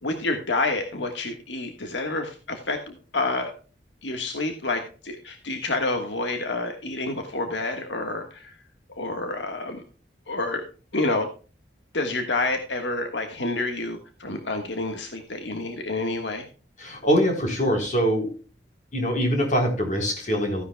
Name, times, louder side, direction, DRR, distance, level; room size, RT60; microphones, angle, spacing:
voice 1, 0.0-3.5 4.0-8.6 8.9-9.8 10.3-10.6 10.9-11.3 11.9-16.5, left 2 dB, 80° left, 5 dB, 1.5 m, -28 dB
voice 2, 16.8-18.3 18.9-20.6, equal, 45° left, 3 dB, 3.9 m, -23 dB
15.0 x 10.0 x 2.2 m, 0.36 s
head